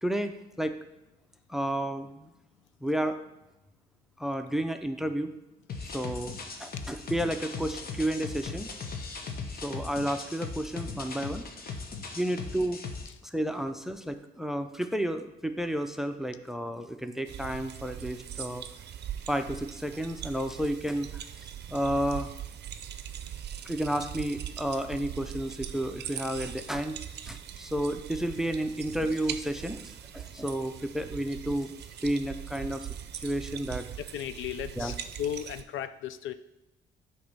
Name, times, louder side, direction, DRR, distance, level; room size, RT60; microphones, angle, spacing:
voice 1, 0.0-0.8 1.5-2.3 2.8-3.2 4.2-5.3 5.8-8.7 9.6-11.4 12.1-12.8 13.2-18.6 19.3-21.1 21.4-22.3 23.6-27.0 27.3-29.8 30.1-31.7 32.0-32.9 33.2-33.8 34.8-34.9, right 1 dB, ahead, 8 dB, 0.5 m, -31 dB
sound 1, 5.7-13.1, left 4 dB, 50° left, 0.9 m, -39 dB
sound 2, 17.3-35.6, right 9 dB, 60° right, 0.5 m, -41 dB
voice 2, 34.0-36.3, left 10 dB, 75° left, 12 dB, 0.4 m, -36 dB
8.3 x 3.0 x 5.4 m, 0.95 s
cardioid pair, 90°, 20 cm